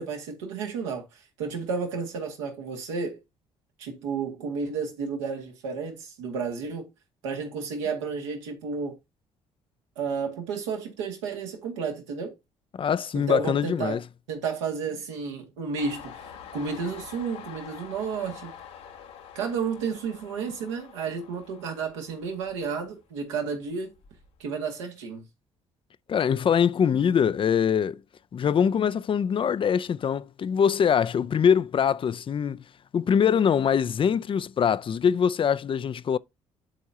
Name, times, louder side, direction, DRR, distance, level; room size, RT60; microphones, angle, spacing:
voice 1, 0.0-3.2 3.8-6.9 7.2-9.0 10.0-12.3 13.1-14.0 14.3-18.5 19.4-23.9 24.4-25.3, right 5 dB, 85° right, 1.9 m, -32 dB
voice 2, 12.7-14.0 26.1-28.0 28.3-32.6 32.9-36.2, left 7 dB, 35° left, 0.4 m, -23 dB
Train, 15.8-23.2 23.6-24.4, left 8 dB, 80° left, 1.3 m, -46 dB
11.5 x 4.6 x 2.8 m
hypercardioid pair, 50°, 15 cm